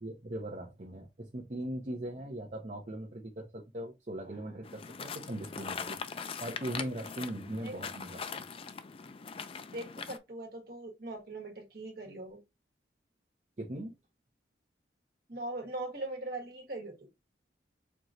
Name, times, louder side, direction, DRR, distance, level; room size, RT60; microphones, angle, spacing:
voice 1, 0.0-6.0 6.4-8.4 13.6-13.9, right 1 dB, 40° right, 0.8 m, -40 dB
sound 1, 4.6-10.2, left 5 dB, 30° left, 0.3 m, -41 dB
voice 2, 9.7-12.4 15.3-17.1, right 2 dB, 55° right, 1.5 m, -41 dB
4.5 x 3.0 x 2.6 m
head